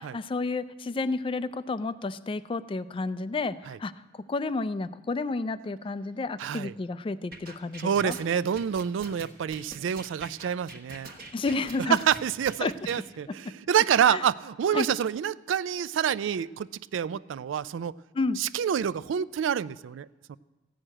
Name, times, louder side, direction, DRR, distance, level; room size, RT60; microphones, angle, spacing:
voice 1, 0.0-3.9 4.3-8.2 11.3-12.0 12.6-12.7 14.1-14.2 14.7-14.9 18.1-18.4, left 3 dB, 25° left, 15 dB, 0.3 m, -31 dB
voice 2, 6.4-6.7 7.8-11.1 11.9-17.9 18.4-20.4, right 8 dB, 75° right, 18 dB, 0.3 m, -27 dB
sound 1, 7.3-13.0, right 2 dB, 50° right, 1.3 m, -44 dB
14.5 x 6.5 x 8.7 m, 1.2 s
head